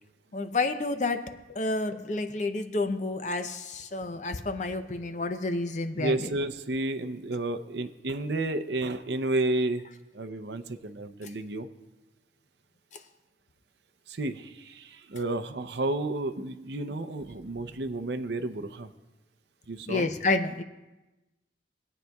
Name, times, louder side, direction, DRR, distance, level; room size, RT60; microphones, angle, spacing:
voice 1, 0.3-6.3 11.2-11.3 12.9-13.0 19.8-20.6, left 2 dB, 40° left, 8 dB, 0.6 m, -30 dB
voice 2, 6.0-9.9 10.1-11.7 14.1-18.9 19.7-20.1, right 2 dB, 65° right, 8 dB, 0.6 m, -31 dB
21.0 x 9.0 x 2.3 m, 1.1 s
head